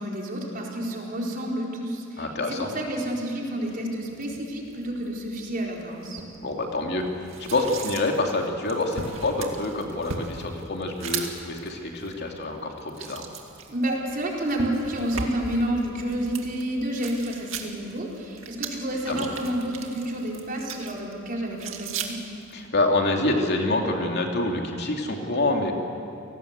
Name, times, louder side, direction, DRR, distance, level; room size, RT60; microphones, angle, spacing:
voice 1, 0.0-6.2 13.7-22.2, right 1 dB, 45° right, -1 dB, 4.4 m, -30 dB
voice 2, 2.2-2.7 6.4-13.2 19.1-19.3 22.5-25.7, left 2 dB, 55° left, 2 dB, 2.9 m, -26 dB
sound 1, 3.6-22.7, right 5 dB, 75° right, 2.3 m, -39 dB
30.0 x 18.5 x 8.2 m, 2.6 s
head